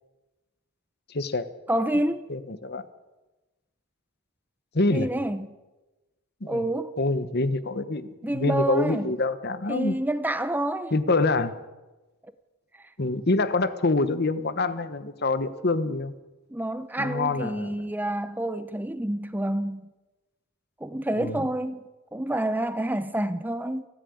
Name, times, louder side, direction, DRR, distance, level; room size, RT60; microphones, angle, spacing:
voice 1, 1.1-1.5 2.3-2.8 4.7-5.1 6.4-6.7 7.0-10.0 10.9-11.5 13.0-16.1 17.0-17.7 21.2-21.4, left 2 dB, 50° left, 1.2 m, -26 dB
voice 2, 1.7-2.2 4.9-5.5 6.5-6.9 8.2-9.1 9.7-11.0 16.5-19.9 20.8-21.8 22.1-23.9, right 1 dB, 10° right, 0.7 m, -28 dB
29.0 x 10.5 x 9.5 m
head